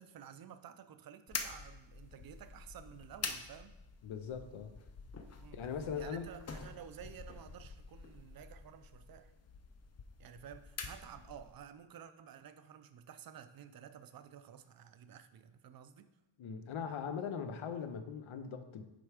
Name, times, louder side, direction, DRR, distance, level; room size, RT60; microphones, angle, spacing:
voice 1, 0.0-3.7 5.4-5.6 6.0-9.3 10.2-16.1, right 9 dB, 50° right, 10 dB, 0.4 m, -52 dB
sound 1, 1.3-11.6, left 5 dB, 35° left, 0.4 m, -47 dB
voice 2, 4.0-4.9 5.5-6.3 16.4-18.8, left 7 dB, 90° left, 8 dB, 0.7 m, -40 dB
7.8 x 3.3 x 4.9 m, 0.99 s
wide cardioid pair, 175°, 47 cm